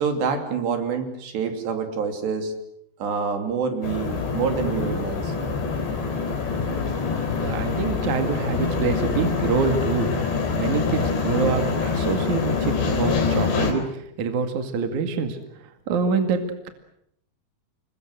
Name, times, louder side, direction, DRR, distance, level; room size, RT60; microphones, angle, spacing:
voice 1, 0.0-2.5 3.0-5.3, right 6 dB, 70° right, 6 dB, 5.0 m, -26 dB
sound 1, 3.8-13.7, left 4 dB, 70° left, 6.4 m, -25 dB
voice 2, 7.4-10.1 10.6-15.4 15.9-16.7, right 5 dB, 50° right, 7 dB, 3.0 m, -26 dB
28.0 x 23.0 x 7.8 m, 0.75 s
omnidirectional pair, 5.2 m